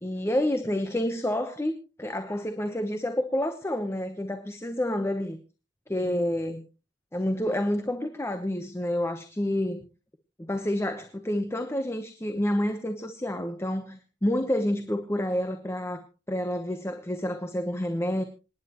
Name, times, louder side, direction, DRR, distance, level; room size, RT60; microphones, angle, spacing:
voice 1, 0.0-5.4 5.9-6.6 7.1-9.9 10.4-18.2, left 1 dB, 15° left, 1.0 m, -29 dB
26.5 x 10.0 x 3.0 m
head